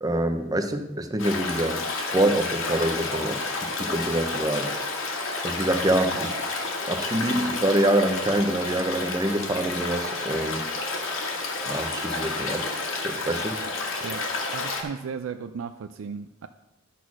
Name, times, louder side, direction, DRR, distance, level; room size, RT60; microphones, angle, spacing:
voice 1, 0.0-1.8 2.1-3.4 3.8-4.7 5.4-6.4 6.9-10.7 11.7-12.7 13.0-13.7, right 1 dB, 20° right, 7 dB, 0.7 m, -25 dB
Stream, 1.2-14.8, left 3 dB, 85° left, 1.6 m, -30 dB
voice 2, 14.5-16.5, right 6 dB, 80° right, 9 dB, 0.4 m, -35 dB
11.0 x 4.2 x 6.1 m, 1.0 s
head